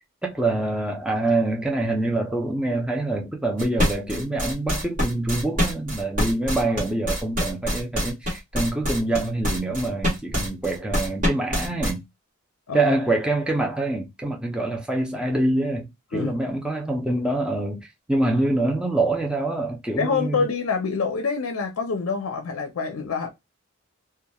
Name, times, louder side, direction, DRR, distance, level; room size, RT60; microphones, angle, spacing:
voice 1, 0.2-12.0 12.7-20.4, right 2 dB, 5° right, 0.5 m, -25 dB
sound 1, 3.6-11.9, equal, 40° right, 1.3 m, -25 dB
voice 2, 20.0-23.3, left 5 dB, 70° left, 0.5 m, -26 dB
2.9 x 2.3 x 2.2 m
head